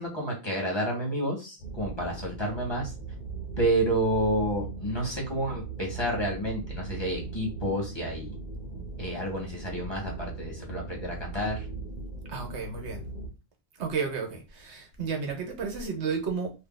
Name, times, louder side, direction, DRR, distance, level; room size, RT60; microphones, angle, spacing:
voice 1, 0.0-2.9 3.6-8.3 9.0-11.7, right 1 dB, 25° left, 1.5 m, -30 dB
sound 1, 1.6-13.3, right 4 dB, 45° left, 1.1 m, -39 dB
voice 2, 12.3-13.0 13.8-16.5, right 5 dB, 75° right, 1.3 m, -32 dB
2.8 x 2.8 x 3.9 m
omnidirectional pair, 1.2 m